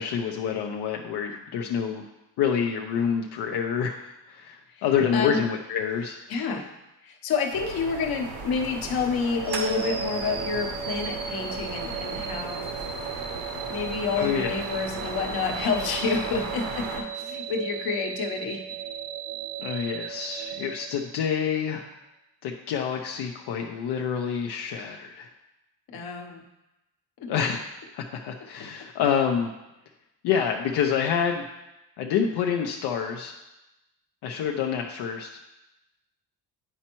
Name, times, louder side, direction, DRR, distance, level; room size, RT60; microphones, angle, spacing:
voice 1, 0.0-2.1 2.4-4.0 4.3-6.2 14.2-14.5 19.6-21.9 22.4-25.3 27.3-27.6 27.9-29.5 30.2-31.4 32.0-33.3 34.2-35.4, left 7 dB, 90° left, 1 dB, 0.7 m, -27 dB
voice 2, 5.1-5.4 6.3-6.7 7.0-12.7 13.7-18.6 25.9-26.4 27.2-27.3 28.8-28.9, left 5 dB, 65° left, 3 dB, 1.0 m, -29 dB
sound 1, 7.5-17.0, right 4 dB, 80° right, 1.2 m, -36 dB
sound 2, 9.4-21.6, right 7 dB, 25° right, 0.5 m, -36 dB
9.8 x 4.3 x 3.0 m, 0.95 s
cardioid pair, 145°, 39 cm